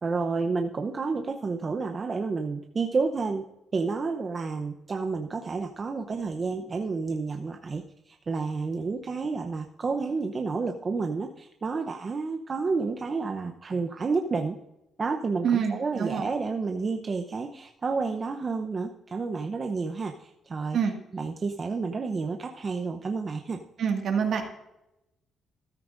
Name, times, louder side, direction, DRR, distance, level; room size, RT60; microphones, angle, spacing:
voice 1, 0.0-3.4 3.7-14.6 15.0-20.8 21.1-23.6, right 4 dB, 35° right, 4 dB, 0.8 m, -30 dB
voice 2, 15.4-16.3 20.7-20.9 23.8-24.4, right 7 dB, 65° right, 4 dB, 1.9 m, -26 dB
14.0 x 12.5 x 2.6 m, 0.89 s
cardioid pair, 90°, 0 cm